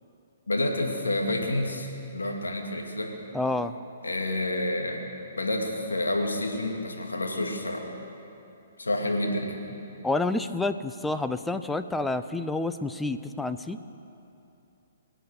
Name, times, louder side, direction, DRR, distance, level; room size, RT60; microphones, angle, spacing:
voice 1, 0.5-3.1 4.0-5.0 5.4-7.9 8.8-9.6, left 1 dB, 80° left, 1 dB, 2.4 m, -29 dB
voice 2, 3.3-3.7 10.0-13.8, left 2 dB, 5° left, 10 dB, 0.5 m, -29 dB
24.0 x 8.9 x 6.4 m, 2.8 s
figure-of-eight pair, 125°, 0 cm